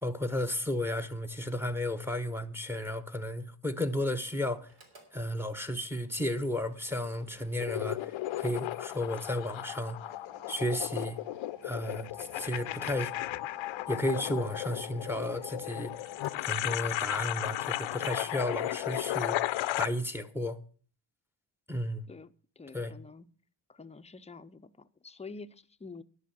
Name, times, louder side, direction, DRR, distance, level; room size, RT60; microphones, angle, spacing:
voice 1, 0.0-4.7 5.1-10.0 10.5-11.2 11.6-13.1 13.9-15.9 16.4-19.4 19.8-20.6 21.7-22.1 22.7-22.9, left 1 dB, 5° right, 0.9 m, -33 dB
Mechanical fan, 4.6-17.4, right 4 dB, 70° right, 3.2 m, -58 dB
sound 1, 7.6-19.9, left 15 dB, 70° left, 0.6 m, -35 dB
voice 2, 22.1-23.3 23.7-26.0, left 4 dB, 15° left, 0.6 m, -48 dB
11.0 x 6.5 x 7.5 m
cardioid pair, 90°, 48 cm